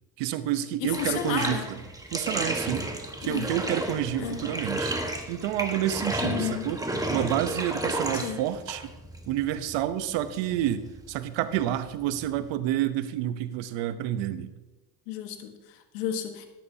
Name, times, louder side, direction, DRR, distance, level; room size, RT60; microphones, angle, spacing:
voice 1, 0.2-1.6 2.1-2.9 3.2-5.0 5.3-6.8 7.1-8.9 9.2-14.5, right 12 dB, 65° right, 12 dB, 1.0 m, -29 dB
voice 2, 0.8-1.7 3.2-3.5 4.2-4.4 6.2-6.7 8.2-8.4 15.1-16.5, left 10 dB, 80° left, 6 dB, 1.5 m, -32 dB
Bathtub (filling or washing), 0.9-12.5, right 1 dB, 5° right, 1.4 m, -33 dB
12.5 x 11.5 x 2.8 m, 1.1 s
supercardioid pair, 85°, 48 cm